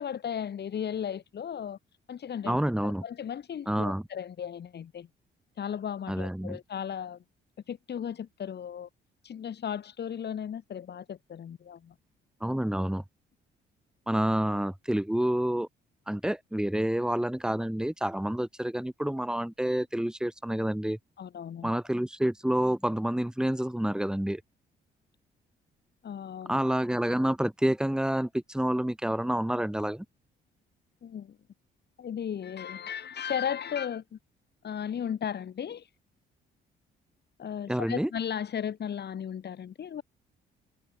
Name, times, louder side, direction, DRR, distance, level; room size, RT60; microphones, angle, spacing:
voice 1, 0.0-1.8 2.1-5.1 5.6-7.2 7.7-8.9 9.2-11.9 21.2-21.7 26.0-26.6 31.0-31.4 32.0-34.2 34.6-35.9 37.4-40.0, left 8 dB, 55° left, 6.6 m, -35 dB
voice 2, 2.4-3.0 3.7-4.0 6.1-6.6 12.4-13.0 14.1-15.7 16.1-21.0 21.6-24.4 26.5-30.1 37.7-38.1, right 1 dB, 5° right, 3.7 m, -28 dB
open air
cardioid pair, 90°, 20 cm